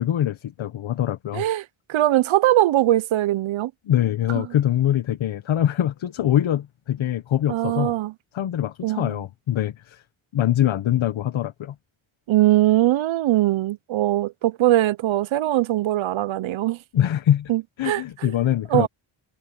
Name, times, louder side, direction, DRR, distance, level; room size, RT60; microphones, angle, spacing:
voice 1, 0.0-1.5 3.8-7.9 8.3-10.0 10.3-11.7 16.9-17.5 17.8-18.9, left 11 dB, 70° left, 1.2 m, -23 dB
voice 2, 1.3-3.7 4.3-4.5 7.5-8.1 8.8-9.1 12.3-16.8 17.5-18.3 18.7-18.9, right 15 dB, 75° right, 0.7 m, -21 dB
cardioid pair, 85°, 48 cm